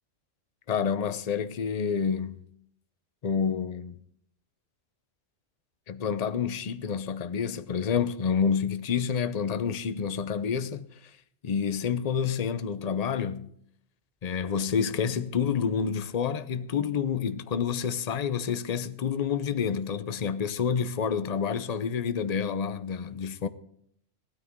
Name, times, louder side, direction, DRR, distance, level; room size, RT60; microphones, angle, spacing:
voice 1, 0.7-2.5 3.2-3.9 5.9-10.9 11.4-13.5 14.2-23.5, left 7 dB, 40° left, 0.7 m, -28 dB
17.0 x 13.0 x 3.7 m
omnidirectional pair, 1.3 m